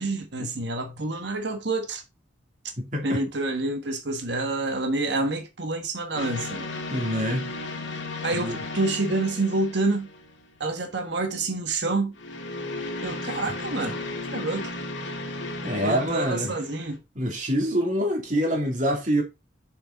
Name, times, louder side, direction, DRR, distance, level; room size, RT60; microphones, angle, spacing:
voice 1, 0.0-2.0 3.0-6.7 8.2-10.1 10.6-12.1 13.0-14.0 14.3-14.7 15.8-17.0, right 2 dB, 65° right, 1.4 m, -28 dB
voice 2, 2.8-3.2 6.9-7.5 8.3-8.6 15.6-16.5 17.1-19.2, equal, 40° right, 2.6 m, -26 dB
sound 1, 6.1-10.6 12.1-17.0, left 2 dB, 80° left, 2.0 m, -35 dB
6.8 x 5.9 x 3.9 m
head